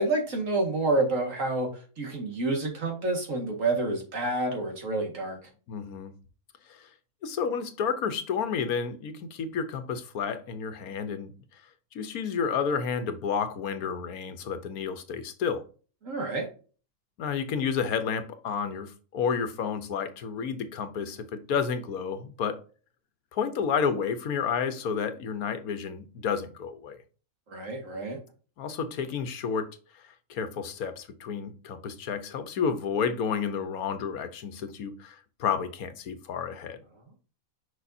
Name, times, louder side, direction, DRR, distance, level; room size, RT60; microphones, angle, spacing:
voice 1, 0.0-5.4 16.0-16.5 27.5-28.2, right 2 dB, 65° right, 2.2 m, -28 dB
voice 2, 5.7-6.1 6.7-6.9 7.2-11.3 11.9-15.6 17.2-22.6 23.3-27.0 28.6-29.7 30.0-36.8, left 6 dB, 85° left, 1.4 m, -31 dB
6.3 x 5.6 x 2.7 m
omnidirectional pair, 1.5 m